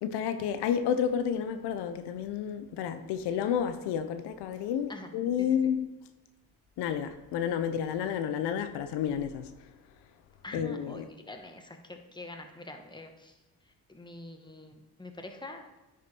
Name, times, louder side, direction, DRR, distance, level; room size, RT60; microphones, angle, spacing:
voice 1, 0.0-5.9 6.8-9.5 10.5-11.0, left 8 dB, 85° left, 0.7 m, -30 dB
voice 2, 10.4-13.3 13.9-15.8, left 2 dB, 10° left, 1.3 m, -45 dB
10.0 x 5.1 x 4.3 m
supercardioid pair, 70°, 40 cm